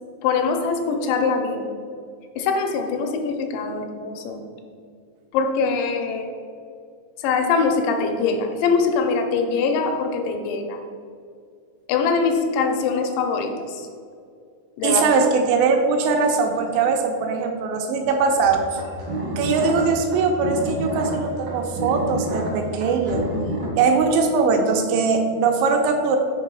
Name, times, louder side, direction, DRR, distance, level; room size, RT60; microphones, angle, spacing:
voice 1, 0.2-1.7 2.4-4.4 5.3-6.3 7.2-10.8 11.9-13.9 14.8-15.0, left 5 dB, 80° left, 4 dB, 2.9 m, -23 dB
voice 2, 14.8-18.8 19.4-23.3 23.8-26.2, right 4 dB, 85° right, 3 dB, 2.6 m, -21 dB
sound 1, 18.4-23.7, right 1 dB, 55° right, 1.3 m, -29 dB
6.7 x 4.7 x 6.1 m, 2.3 s
omnidirectional pair, 5.4 m